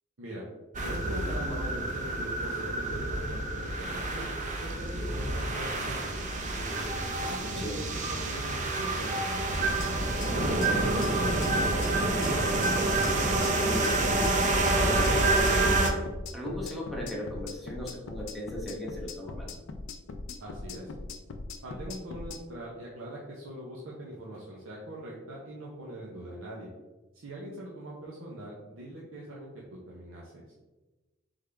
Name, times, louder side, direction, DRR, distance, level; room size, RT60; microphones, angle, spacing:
sound 1, 0.7-15.9, right 2 dB, 40° right, 0.5 m, -28 dB
voice 1, 0.8-4.3 4.6-6.9 7.3-9.8 10.3-12.2 20.4-20.9 21.6-26.7 27.1-30.3, right 1 dB, 90° right, -5 dB, 0.7 m, -41 dB
sound 2, 9.6-22.4, left 3 dB, 70° left, 0.4 m, -40 dB
voice 2, 13.5-14.3 14.7-15.9 16.3-19.5, left 1 dB, ahead, -4 dB, 1.0 m, -37 dB
3.6 x 3.5 x 3.3 m, 1.1 s
head